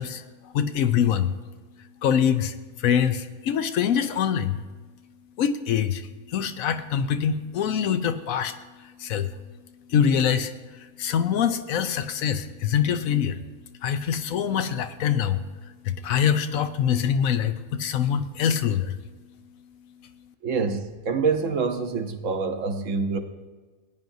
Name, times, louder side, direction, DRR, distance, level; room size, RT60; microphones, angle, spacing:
voice 1, 0.0-1.3 2.0-4.6 5.4-9.3 9.9-13.4 13.8-19.0, left 8 dB, 75° left, 1.0 m, -25 dB
voice 2, 20.4-23.2, right 4 dB, 65° right, 1.1 m, -26 dB
17.5 x 9.3 x 2.6 m
omnidirectional pair, 1.5 m